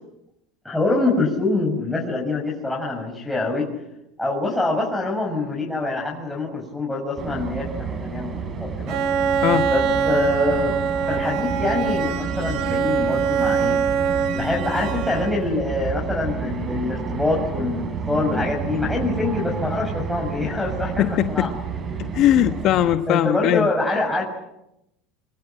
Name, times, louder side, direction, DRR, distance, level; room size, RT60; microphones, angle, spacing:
voice 1, 0.6-3.7 4.2-9.0 9.7-10.7 11.1-13.8 14.4-21.5 23.1-24.2, left 2 dB, 5° left, 6.6 m, -25 dB
sound 1, 7.2-23.0, right 6 dB, 30° right, 4.9 m, -30 dB
Bowed string instrument, 8.9-15.6, right 6 dB, 55° right, 3.1 m, -23 dB
voice 2, 21.0-21.5 22.0-23.7, left 12 dB, 50° left, 1.1 m, -20 dB
25.0 x 25.0 x 9.0 m
supercardioid pair, 115°, 0 cm